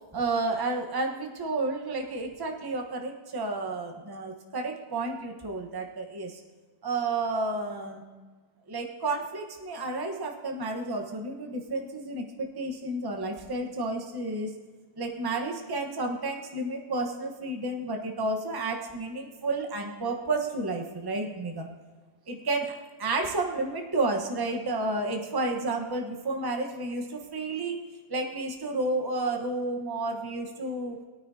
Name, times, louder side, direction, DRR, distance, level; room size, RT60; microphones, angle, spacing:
voice 1, 0.1-6.4 6.8-8.0 8.7-14.6 15.0-21.7 22.3-27.8 28.1-31.0, right 2 dB, 15° right, 2 dB, 1.0 m, -31 dB
21.0 x 9.5 x 2.8 m, 1.4 s
omnidirectional pair, 2.0 m